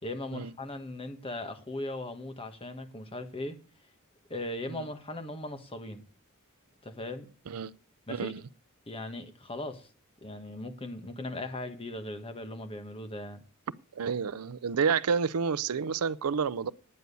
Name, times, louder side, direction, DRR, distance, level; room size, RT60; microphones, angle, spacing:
voice 1, 0.0-3.6 4.3-6.0 6.8-7.3 8.1-8.3 8.9-9.9 10.2-13.4, left 1 dB, 25° left, 1.5 m, -38 dB
voice 2, 8.1-8.4 14.0-16.7, right 6 dB, 85° right, 0.5 m, -29 dB
9.7 x 9.2 x 6.8 m
head